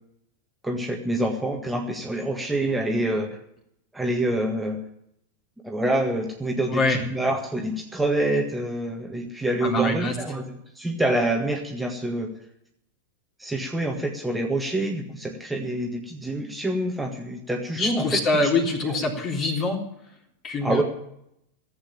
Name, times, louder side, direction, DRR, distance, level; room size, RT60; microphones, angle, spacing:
voice 1, 0.6-3.4 3.9-4.8 5.6-12.3 13.4-18.0 18.9-19.0 20.6-20.8, right 1 dB, 5° right, 1 dB, 1.7 m, -26 dB
voice 2, 6.7-7.0 9.6-10.1 17.7-19.8 20.4-20.8, left 2 dB, 30° left, 3 dB, 3.4 m, -24 dB
15.0 x 8.3 x 8.8 m, 0.76 s
figure-of-eight pair, 90°, 0 cm